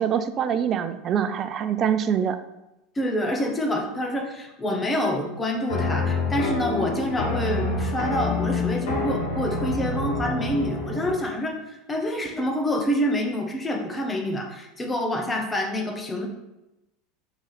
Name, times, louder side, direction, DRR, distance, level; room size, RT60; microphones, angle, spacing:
voice 1, 0.0-2.4, right 8 dB, 40° right, 11 dB, 0.4 m, -24 dB
voice 2, 2.9-11.6 11.9-16.3, equal, 20° left, 2 dB, 0.8 m, -27 dB
sound 1, 5.7-11.3, left 3 dB, 75° left, 1.1 m, -27 dB
3.8 x 3.1 x 4.1 m, 0.97 s
hypercardioid pair, 85°, 0 cm